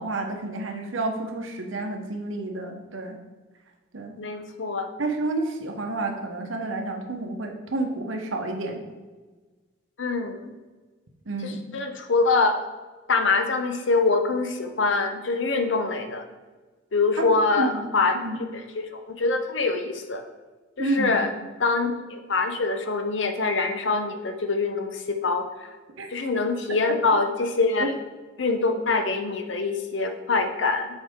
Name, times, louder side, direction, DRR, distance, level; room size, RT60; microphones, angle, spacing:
voice 1, 0.0-3.2 3.9-4.2 5.0-8.8 11.3-11.6 17.2-17.3 17.6-18.4 20.8-21.2 26.0-26.1 27.8-27.9, right 2 dB, 90° right, 4 dB, 1.0 m, -30 dB
voice 2, 4.2-4.9 10.0-10.5 11.4-12.5 13.1-16.3 16.9-18.2 18.5-20.2 20.8-21.3 21.6-25.7 26.1-27.9 28.4-30.9, left 3 dB, 70° left, 7 dB, 0.7 m, -24 dB
7.9 x 4.6 x 3.6 m, 1.3 s
head